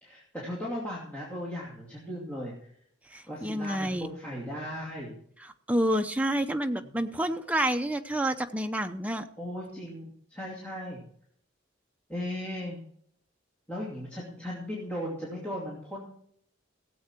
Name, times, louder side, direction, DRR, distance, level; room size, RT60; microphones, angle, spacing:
voice 1, 0.0-2.5 3.3-5.2 6.9-7.0 9.4-11.0 12.1-12.8 13.7-16.1, equal, 10° left, -7 dB, 2.7 m, -37 dB
voice 2, 3.1-4.1 5.4-9.2, right 1 dB, 5° right, 6 dB, 0.7 m, -29 dB
16.5 x 7.8 x 4.5 m, 0.66 s
head